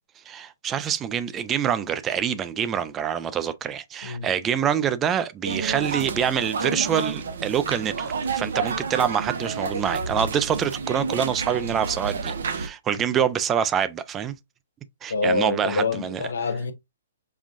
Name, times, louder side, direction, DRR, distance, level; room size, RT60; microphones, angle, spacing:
voice 1, 0.3-14.3 15.0-16.2, right 8 dB, 20° right, 0.5 m, -26 dB
sound 1, 5.4-12.7, right 5 dB, 70° right, 0.8 m, -30 dB
voice 2, 15.1-16.7, left 3 dB, 75° left, 0.8 m, -26 dB
5.5 x 2.4 x 2.5 m
hypercardioid pair, 130°, 0 cm